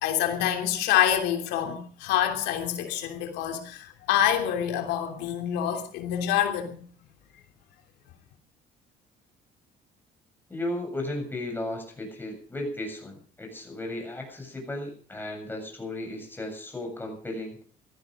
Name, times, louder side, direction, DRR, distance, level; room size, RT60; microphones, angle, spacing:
voice 1, 0.0-6.8, left 10 dB, 90° left, 3.1 m, -26 dB
voice 2, 10.5-17.6, left 1 dB, 10° left, 7.7 m, -35 dB
17.5 x 14.0 x 5.2 m
cardioid pair, 110°, 17 cm